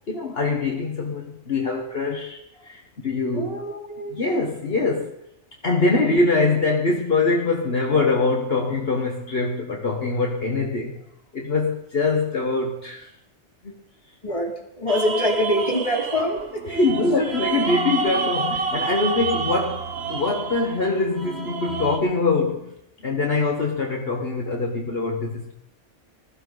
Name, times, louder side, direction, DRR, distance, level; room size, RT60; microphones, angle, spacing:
voice 1, 0.1-3.6 4.1-5.1 5.6-11.0 11.3-13.1 13.6-13.7 16.7-22.7 23.0-25.5, left 3 dB, 55° left, 1.7 m, -23 dB
voice 2, 3.3-4.2 6.0-6.2 14.2-16.7, left 1 dB, 30° left, 3.0 m, -25 dB
sound 1, 14.9-22.0, right 5 dB, 60° right, 1.5 m, -28 dB
20.0 x 15.0 x 4.0 m
omnidirectional pair, 1.2 m